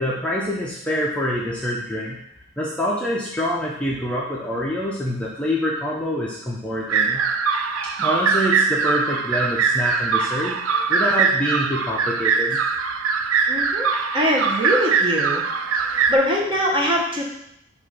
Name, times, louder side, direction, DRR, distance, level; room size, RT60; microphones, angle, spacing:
voice 1, 0.0-2.2 2.6-7.2 8.0-12.6, equal, 5° left, -6 dB, 0.6 m, -25 dB
sound 1, 6.9-16.2, right 5 dB, 85° right, 0.4 m, -22 dB
voice 2, 13.5-13.9 14.1-15.4 16.1-17.2, equal, 25° right, -2 dB, 1.0 m, -22 dB
6.9 x 2.6 x 5.1 m, 0.76 s
head